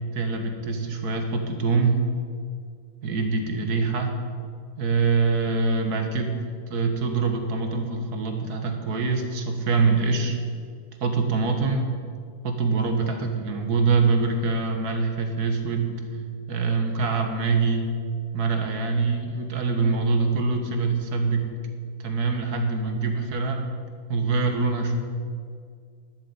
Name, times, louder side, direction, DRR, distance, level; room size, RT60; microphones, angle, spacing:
voice 1, 0.1-2.1 3.0-4.1 4.8-6.3 6.7-10.4 11.0-11.9 12.4-16.0 16.5-17.8 18.3-21.4 22.0-23.6 24.1-25.0, right 4 dB, 85° right, 5 dB, 2.0 m, -24 dB
11.5 x 7.4 x 9.6 m, 2.1 s
omnidirectional pair, 1.6 m